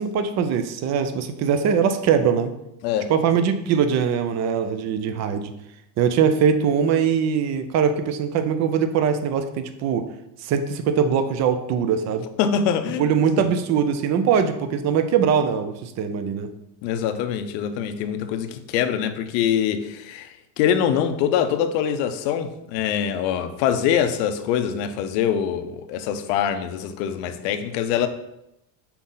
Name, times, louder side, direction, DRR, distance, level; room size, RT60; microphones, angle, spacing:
voice 1, 0.0-2.5 3.1-5.5 6.0-10.1 10.4-12.3 13.0-16.5, right 7 dB, 35° right, 0.4 m, -22 dB
voice 2, 12.4-13.1 13.4-13.5 16.8-28.1, left 8 dB, 80° left, 0.8 m, -24 dB
5.8 x 4.2 x 3.8 m
cardioid pair, 150°, 49 cm